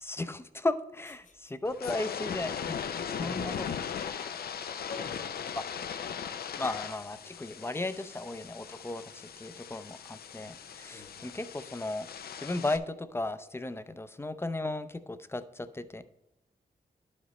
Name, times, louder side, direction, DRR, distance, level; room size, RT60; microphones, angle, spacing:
voice 1, 0.0-2.8 3.1-3.7 5.5-5.6 6.6-12.1 12.4-16.0, left 2 dB, 15° left, 13 dB, 0.4 m, -35 dB
sound 1, 1.6-12.8, left 7 dB, 75° left, 0.5 m, -39 dB
voice 2, 3.2-3.8 4.8-5.6 10.9-11.3, left 4 dB, 50° left, 5 dB, 1.1 m, -46 dB
11.0 x 5.0 x 4.1 m, 0.87 s
wide cardioid pair, 105°, 16 cm